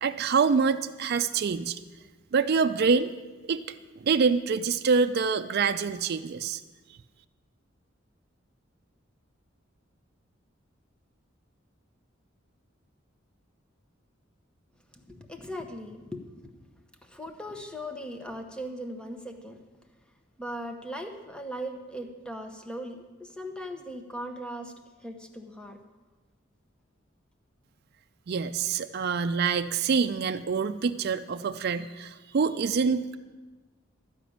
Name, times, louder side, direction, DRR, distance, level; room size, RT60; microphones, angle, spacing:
voice 1, 0.0-1.8 2.3-3.1 3.5-3.6 4.0-6.6 28.3-33.2, right 5 dB, 55° right, 8 dB, 0.4 m, -26 dB
voice 2, 14.9-16.6 17.0-19.6 20.4-24.7 25.0-25.8 28.6-28.7, equal, 5° left, 5 dB, 0.9 m, -39 dB
13.0 x 5.0 x 8.6 m, 1.3 s
head